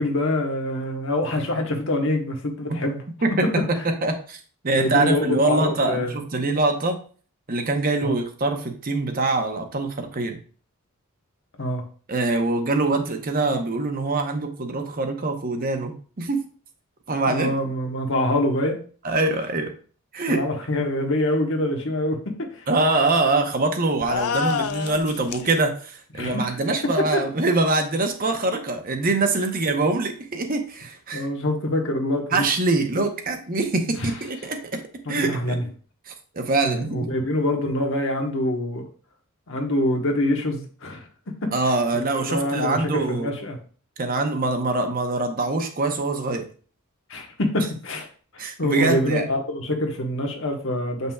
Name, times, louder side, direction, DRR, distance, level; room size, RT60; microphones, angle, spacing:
voice 1, 0.0-3.0 4.7-6.2 8.0-8.1 11.6-11.8 17.2-18.8 20.3-22.7 26.2-26.5 27.1-27.2 31.1-32.5 34.0-34.1 35.0-35.6 36.6-38.9 39.5-41.1 41.4-41.5 41.9-43.6 47.1-48.1 48.6-51.1, left 1 dB, 60° left, 3 dB, 1.2 m, -25 dB
voice 2, 3.7-7.0 7.5-10.4 12.1-16.5 17.1-17.5 19.0-19.7 20.1-20.4 22.7-31.3 32.3-34.8 35.1-35.6 36.1-37.0 41.5-43.3 44.0-46.5 48.4-49.3, right 2 dB, 40° right, 5 dB, 0.8 m, -24 dB
sound 1, 24.0-25.5, left 6 dB, 75° left, 0.5 m, -27 dB
7.6 x 5.4 x 2.3 m, 0.41 s
head